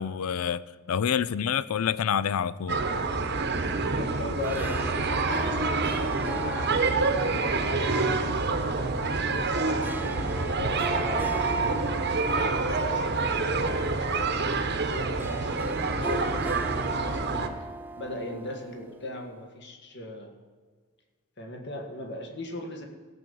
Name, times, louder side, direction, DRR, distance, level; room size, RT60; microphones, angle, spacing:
voice 1, 0.0-2.8, left 8 dB, 85° left, 0.4 m, -27 dB
sound 1, 2.7-17.5, right 3 dB, 50° right, 0.9 m, -27 dB
voice 2, 4.0-5.6 6.4-11.5 12.3-17.7 18.0-20.3 21.4-22.8, left 2 dB, 55° left, 1.7 m, -39 dB
Harp, 4.1-19.4, right 1 dB, 10° right, 0.4 m, -40 dB
16.5 x 7.2 x 5.4 m
head